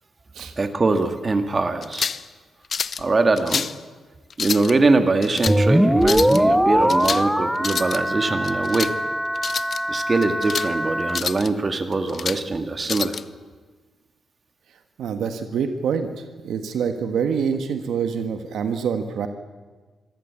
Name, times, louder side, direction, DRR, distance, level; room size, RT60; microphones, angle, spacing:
voice 1, 0.6-2.1 3.0-3.6 4.4-8.9 9.9-13.2, right 3 dB, 35° right, 8 dB, 1.9 m, -22 dB
sound 1, 1.8-2.3 2.7-3.0 3.4-3.8 4.3-4.7 5.2-5.6 6.0-6.4 6.9-7.3 7.6-8.0 8.4-8.9 9.4-9.8 10.2-10.7 11.1-11.5 11.9-12.4 12.9-13.2, left 6 dB, 55° left, 0.6 m, -28 dB
sound 2, 5.5-11.2, equal, 5° right, 0.8 m, -21 dB
voice 2, 15.0-19.3, right 6 dB, 85° right, 8 dB, 1.5 m, -26 dB
25.0 x 14.5 x 8.4 m, 1.4 s
cardioid pair, 70°, 0 cm